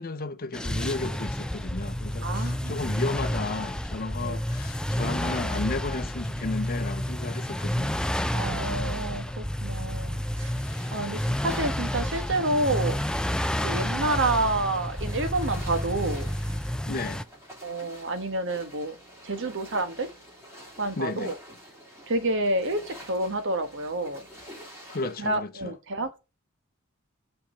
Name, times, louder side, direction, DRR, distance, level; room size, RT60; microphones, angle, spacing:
voice 1, 0.0-8.0 16.9-17.2 21.0-21.3 24.9-25.7, left 3 dB, 45° left, 0.7 m, -33 dB
sound 1, 0.5-17.2, equal, 5° left, 0.3 m, -30 dB
voice 2, 2.2-2.8 4.2-4.4 8.3-10.5 10.9-13.0 13.6-16.3 17.6-19.0 19.2-20.1 20.8-21.3 22.1-24.2 25.2-26.2, right 2 dB, 60° right, 1.4 m, -29 dB
sound 2, 10.2-25.3, equal, 15° right, 3.6 m, -48 dB
5.7 x 5.2 x 5.6 m
head